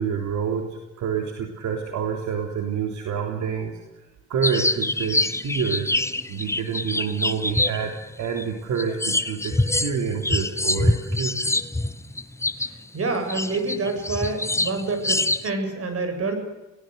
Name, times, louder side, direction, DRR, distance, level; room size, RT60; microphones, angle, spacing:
voice 1, 0.0-3.7 4.3-5.9 6.3-11.5, right 6 dB, 75° right, 3 dB, 3.4 m, -28 dB
sound 1, 4.4-8.4 8.8-12.8 13.3-15.5, left 2 dB, 10° left, 1.1 m, -25 dB
voice 2, 12.9-16.3, right 3 dB, 50° right, 7 dB, 7.9 m, -27 dB
28.5 x 19.0 x 8.1 m, 1.0 s
cardioid pair, 90°, 30 cm